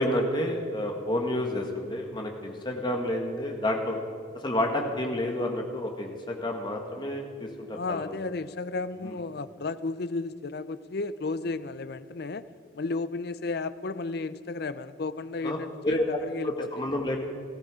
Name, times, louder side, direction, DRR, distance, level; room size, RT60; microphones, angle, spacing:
voice 1, 0.0-4.0 4.4-8.1 9.0-9.1 15.4-15.6 15.8-16.0 16.4-17.3, left 1 dB, 25° left, 2 dB, 1.6 m, -29 dB
voice 2, 7.7-12.5 12.7-16.7, left 3 dB, 55° left, 14 dB, 0.5 m, -33 dB
17.5 x 14.5 x 5.0 m, 2.1 s
head